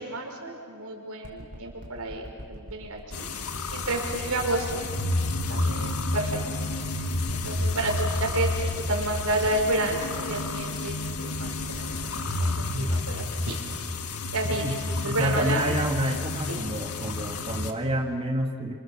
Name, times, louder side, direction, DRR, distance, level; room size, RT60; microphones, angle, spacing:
voice 1, 0.0-2.2 2.5-4.8 5.5-6.4 6.9-7.0 7.3-11.5 11.7-13.6 14.3-15.7 16.5-16.6, right 2 dB, 85° right, 1 dB, 5.2 m, -30 dB
sound 1, 1.2-14.0 14.6-14.7, equal, 50° right, 4.4 m, -43 dB
sound 2, 3.1-17.7, left 2 dB, 80° left, 1.8 m, -30 dB
voice 2, 12.7-13.2 14.5-18.7, equal, 25° right, 2 dB, 1.6 m, -29 dB
28.5 x 27.0 x 7.5 m, 2.1 s
head